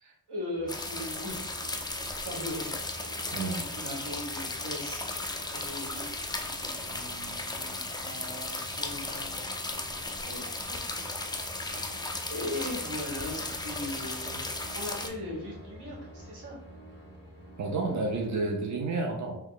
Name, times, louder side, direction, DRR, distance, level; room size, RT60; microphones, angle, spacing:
voice 1, 0.3-1.5 2.2-2.8 3.5-5.0 5.5-6.0 6.3-9.8 10.2-11.2 12.3-16.6, left 1 dB, 90° right, -4 dB, 1.2 m, -39 dB
sound 1, 0.5-18.6, right 1 dB, 25° right, 1.2 m, -49 dB
sound 2, 0.7-15.1, left 2 dB, 10° left, 0.3 m, -36 dB
voice 2, 17.6-19.4, right 3 dB, 45° right, 1 dB, 0.6 m, -30 dB
3.0 x 2.2 x 3.7 m, 0.78 s
wide cardioid pair, 90°, 39 cm